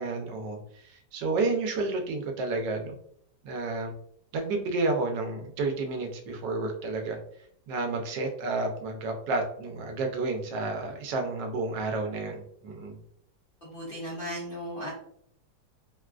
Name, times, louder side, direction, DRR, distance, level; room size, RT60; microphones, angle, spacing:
voice 1, 0.0-2.9 3.4-3.9 4.3-7.2 7.7-13.0, right 3 dB, 85° right, 3 dB, 1.3 m, -31 dB
voice 2, 13.6-14.9, equal, 45° left, -5 dB, 0.7 m, -36 dB
3.6 x 2.3 x 2.3 m, 0.68 s
omnidirectional pair, 1.8 m